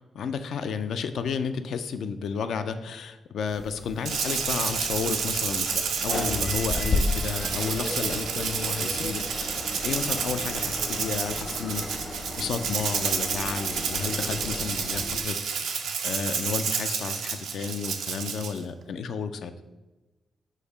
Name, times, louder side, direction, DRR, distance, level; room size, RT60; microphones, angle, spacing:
voice 1, 0.2-19.5, left 6 dB, 75° left, 10 dB, 0.3 m, -32 dB
sound 1, 3.5-15.2, left 2 dB, 55° left, 0.8 m, -35 dB
Rattle (instrument), 4.0-18.6, right 6 dB, 85° right, 0.4 m, -30 dB
sound 2, 4.1-11.9, equal, 5° left, 0.4 m, -43 dB
5.2 x 2.1 x 4.8 m, 1.1 s
supercardioid pair, 55°, 0 cm